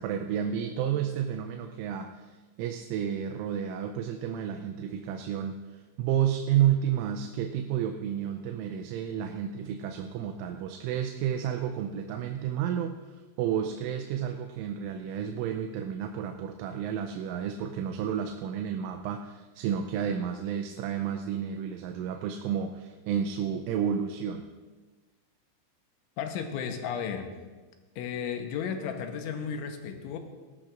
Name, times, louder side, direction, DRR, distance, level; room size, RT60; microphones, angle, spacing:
voice 1, 0.0-24.5, right 9 dB, 85° right, 5 dB, 3.1 m, -31 dB
voice 2, 26.2-27.3 28.0-30.2, left 7 dB, 80° left, 5 dB, 3.3 m, -34 dB
19.0 x 13.5 x 2.5 m, 1.3 s
omnidirectional pair, 5.7 m